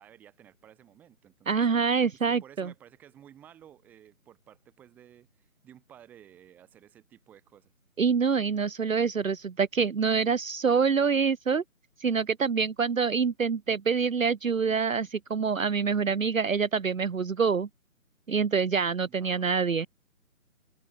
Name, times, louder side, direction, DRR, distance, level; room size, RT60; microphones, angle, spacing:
voice 1, 0.0-1.6 2.1-7.7 19.1-19.6, right 10 dB, 5° right, 6.8 m, -54 dB
voice 2, 1.5-2.7 8.0-11.6 12.0-17.7 18.3-19.9, right 5 dB, 65° right, 0.9 m, -26 dB
hypercardioid pair, 180°, 43 cm